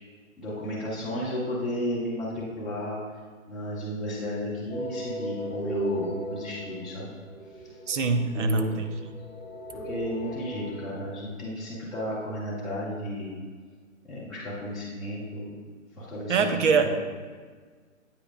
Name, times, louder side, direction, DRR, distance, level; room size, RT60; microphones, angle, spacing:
voice 1, 0.4-3.0 3.5-7.1 8.1-8.7 9.7-13.3 14.0-15.5 16.0-16.6 16.9-17.0, left 1 dB, ahead, -15 dB, 1.6 m, -33 dB
sound 1, 4.7-10.8, right 2 dB, 45° left, 1.3 m, -37 dB
voice 2, 7.9-8.9 16.3-17.0, right 4 dB, 60° right, 7 dB, 0.7 m, -23 dB
8.7 x 5.1 x 2.5 m, 1.5 s
hypercardioid pair, 160°, 41 cm